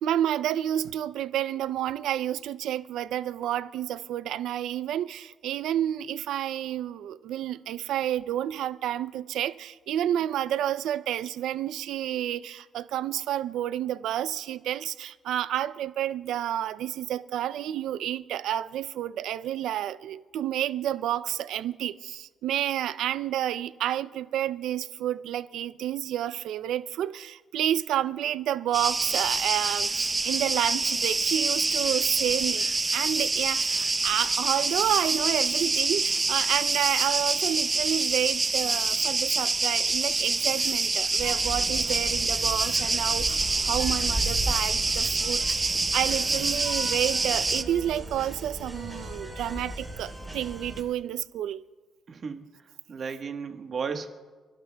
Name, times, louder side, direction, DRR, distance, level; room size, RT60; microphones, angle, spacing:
voice 1, 0.0-32.7 32.9-51.6, right 11 dB, 80° right, 0.4 m, -30 dB
sound 1, 28.7-47.6, right 3 dB, 25° right, 0.6 m, -26 dB
sound 2, 41.2-50.8, right 1 dB, 10° right, 3.6 m, -36 dB
voice 2, 52.1-54.1, right 5 dB, 50° right, 1.2 m, -35 dB
30.0 x 12.0 x 2.3 m
cardioid pair, 90°, 0 cm